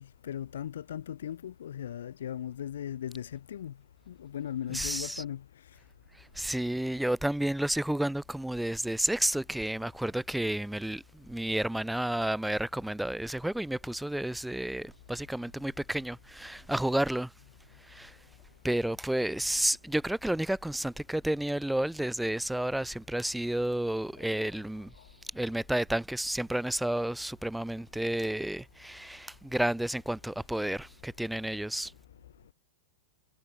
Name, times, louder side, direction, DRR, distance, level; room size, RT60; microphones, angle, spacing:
voice 1, 0.0-3.7 4.1-5.4, left 10 dB, 80° left, 2.4 m, -38 dB
voice 2, 4.7-5.2 6.4-17.3 17.9-18.1 18.6-24.9 25.3-31.9, right 1 dB, 5° right, 2.0 m, -31 dB
hypercardioid pair, 130°, 0 cm